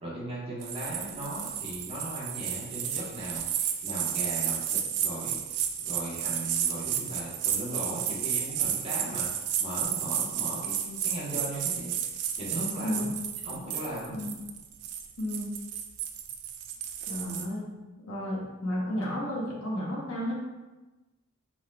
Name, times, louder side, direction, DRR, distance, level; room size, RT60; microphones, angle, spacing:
voice 1, 0.0-9.3 9.6-12.1 12.4-13.1 13.4-14.2, right 1 dB, 25° right, -6 dB, 1.5 m, -38 dB
sound 1, 0.6-17.5, right 9 dB, 75° right, 0.4 m, -32 dB
voice 2, 15.2-15.5 17.1-17.7 18.0-20.3, left 1 dB, 65° left, -5 dB, 1.2 m, -32 dB
4.9 x 3.9 x 2.4 m, 1.1 s
head